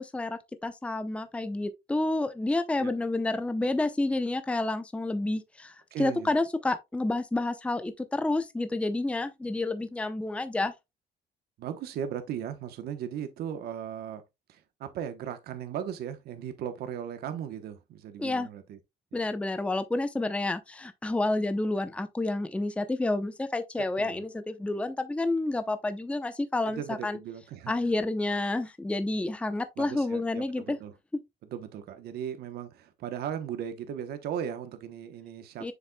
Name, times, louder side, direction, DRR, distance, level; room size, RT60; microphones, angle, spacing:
voice 1, 0.0-10.7 18.2-18.5 19.1-27.2 27.7-30.8 35.6-35.7, left 2 dB, 5° left, 0.6 m, -29 dB
voice 2, 5.9-6.3 11.6-14.2 14.5-18.8 19.1-19.2 23.8-24.2 26.6-27.9 29.8-30.9 31.5-35.7, right 9 dB, 70° right, 1.0 m, -37 dB
7.2 x 6.6 x 2.2 m
cardioid pair, 110°, 17 cm